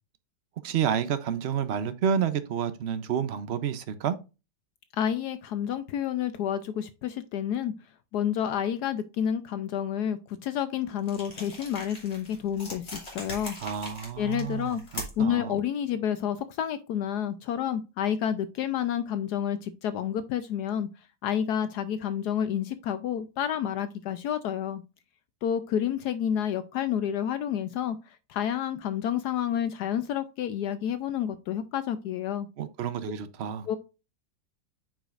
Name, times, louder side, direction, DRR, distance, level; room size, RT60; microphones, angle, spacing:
voice 1, 0.6-4.2 13.6-15.6 32.6-33.7, right 8 dB, 60° right, 0.7 m, -30 dB
voice 2, 5.0-7.7 8.1-13.6 14.2-14.8 15.2-20.9 21.2-24.8 25.4-32.5 33.7-33.8, left 9 dB, 75° left, 1.1 m, -29 dB
sound 1, 11.0-15.3, left 1 dB, 35° left, 2.7 m, -41 dB
8.9 x 5.0 x 2.4 m
omnidirectional pair, 1.9 m